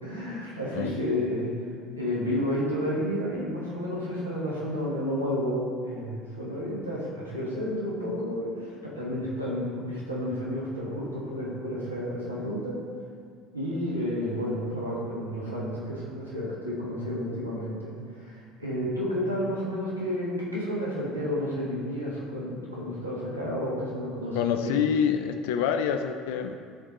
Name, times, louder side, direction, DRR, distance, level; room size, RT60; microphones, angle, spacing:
voice 1, 0.0-1.5 1.9-12.8 13.5-24.8, equal, 90° right, -7 dB, 1.4 m, -31 dB
voice 2, 24.4-26.5, left 8 dB, 65° left, 7 dB, 0.4 m, -26 dB
11.5 x 4.1 x 3.0 m, 2.1 s
figure-of-eight pair, 65°, 0 cm